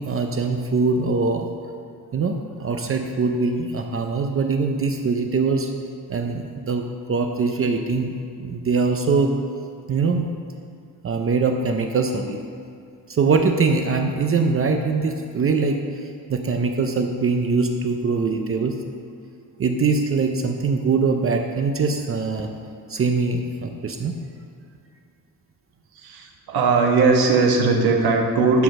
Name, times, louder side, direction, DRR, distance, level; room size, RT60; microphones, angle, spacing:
voice 1, 0.0-1.5 2.1-5.7 6.1-8.1 8.4-9.3 9.9-10.3 11.0-12.4 13.1-18.7 19.6-22.5 22.9-24.2, right 4 dB, 35° right, 4 dB, 0.6 m, -22 dB
voice 2, 25.9-28.6, right 4 dB, 80° right, 1 dB, 1.5 m, -19 dB
11.5 x 4.9 x 6.4 m, 2.4 s
wide cardioid pair, 155°, 37 cm